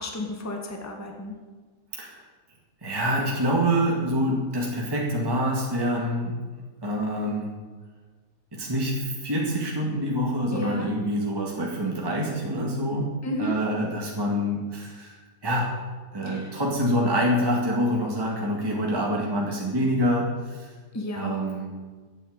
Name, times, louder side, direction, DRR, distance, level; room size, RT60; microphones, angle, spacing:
voice 1, 0.0-1.3 10.5-10.9 13.2-13.5 16.2-16.5 20.9-21.4, left 1 dB, 10° left, 2 dB, 1.6 m, -32 dB
voice 2, 1.9-2.2 2.8-6.4 6.8-7.6 8.5-15.7 16.1-20.7 21.2-21.7, equal, 15° right, -3 dB, 2.0 m, -26 dB
13.5 x 8.7 x 8.1 m, 1.4 s
omnidirectional pair, 1.7 m